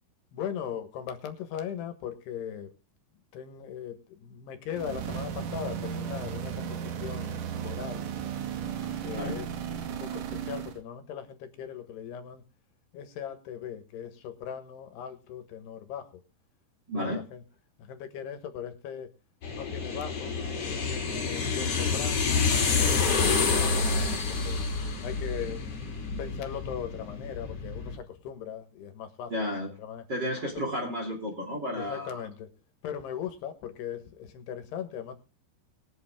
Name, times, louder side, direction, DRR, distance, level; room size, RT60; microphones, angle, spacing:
voice 1, 0.3-2.7 3.3-8.1 9.0-9.5 9.9-12.4 12.9-16.1 16.9-17.4 17.8-19.1 19.5-22.4 22.7-23.4 23.7-24.6 25.0-25.6 26.2-29.3 29.8-30.1 30.6-30.7 31.7-32.5 32.8-35.1, left 9 dB, 75° left, 8 dB, 3.4 m, -39 dB
sound 1, 4.7-10.8, right 8 dB, 60° right, 2.5 m, -35 dB
voice 2, 16.9-17.2 29.3-29.7 30.1-32.3, left 1 dB, 30° right, 0 dB, 3.0 m, -32 dB
sound 2, 19.4-28.0, left 4 dB, 40° left, 3.1 m, -28 dB
21.5 x 8.4 x 3.7 m, 0.30 s
omnidirectional pair, 4.8 m